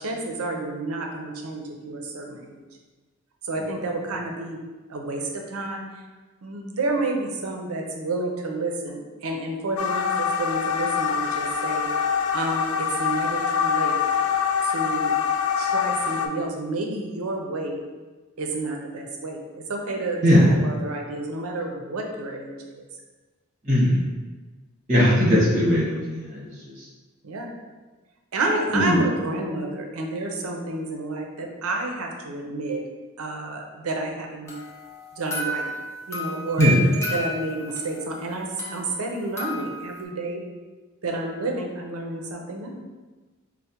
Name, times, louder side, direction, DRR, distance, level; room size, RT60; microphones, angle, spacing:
voice 1, 0.0-2.6 3.4-4.6 4.9-5.8 6.4-11.9 12.3-14.0 14.6-15.2 15.6-17.8 18.4-19.4 19.7-22.8 27.2-27.5 28.3-32.8 33.2-34.5 35.1-35.7 36.1-36.7 37.1-40.4 41.0-42.8, right 2 dB, 75° right, 1 dB, 0.5 m, -30 dB
sound 1, 9.8-16.3, left 7 dB, 85° left, 0.3 m, -24 dB
voice 2, 23.6-24.0 24.9-26.5 26.8-26.9 28.7-29.0 36.6-36.8, equal, 35° right, -7 dB, 1.3 m, -19 dB
sound 2, 34.5-38.1 38.6-40.0, equal, 15° left, 0.6 m, -32 dB
4.4 x 2.1 x 2.8 m, 1.3 s
head